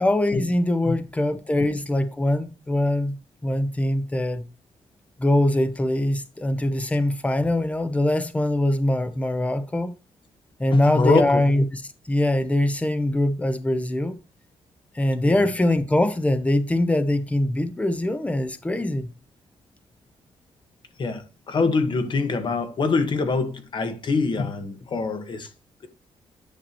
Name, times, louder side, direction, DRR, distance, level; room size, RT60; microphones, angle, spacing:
voice 1, 0.0-4.4 5.2-9.9 10.6-11.8 12.1-14.1 14.9-19.1, left 1 dB, 10° left, 0.9 m, -23 dB
voice 2, 10.7-11.4 15.2-15.4 21.0-25.5, left 4 dB, 45° left, 1.5 m, -24 dB
10.0 x 5.9 x 3.0 m
wide cardioid pair, 140°, 11 cm